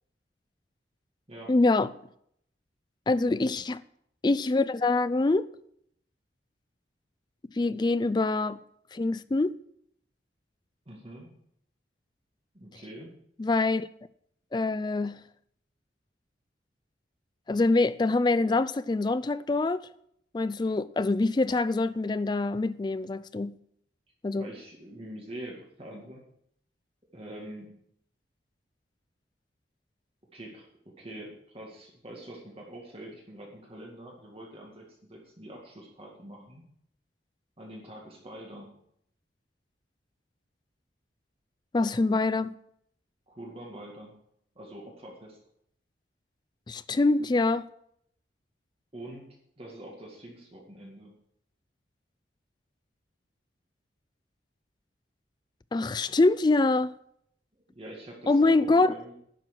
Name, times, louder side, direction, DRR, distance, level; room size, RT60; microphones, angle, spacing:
voice 1, 1.5-1.9 3.1-3.8 4.2-5.5 7.6-8.6 8.9-9.6 13.4-13.9 14.5-15.2 17.5-19.9 20.3-23.6 24.2-24.4 41.7-42.5 46.7-47.7 55.7-56.9 58.3-59.0, left 3 dB, 25° left, 0.3 m, -25 dB
voice 2, 10.9-11.3 12.5-13.1 24.4-26.2 27.1-27.7 30.3-36.6 37.6-38.7 43.3-44.1 44.6-45.4 48.9-49.2 49.6-51.1 57.7-59.1, right 1 dB, 30° right, 2.0 m, -45 dB
10.5 x 6.1 x 7.6 m
head